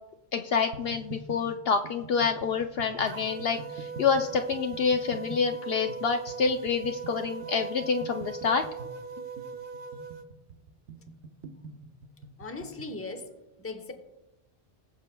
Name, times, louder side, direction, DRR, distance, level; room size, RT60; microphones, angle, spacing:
voice 1, 0.3-8.6, left 5 dB, 65° left, 6 dB, 0.7 m, -27 dB
sound 1, 0.7-13.0, right 3 dB, 90° right, 1.0 m, -46 dB
sound 2, 3.1-10.3, right 6 dB, 55° right, 0.7 m, -40 dB
voice 2, 12.4-13.9, left 3 dB, 15° left, 7 dB, 0.7 m, -39 dB
20.5 x 6.8 x 2.2 m, 0.98 s
omnidirectional pair, 1.2 m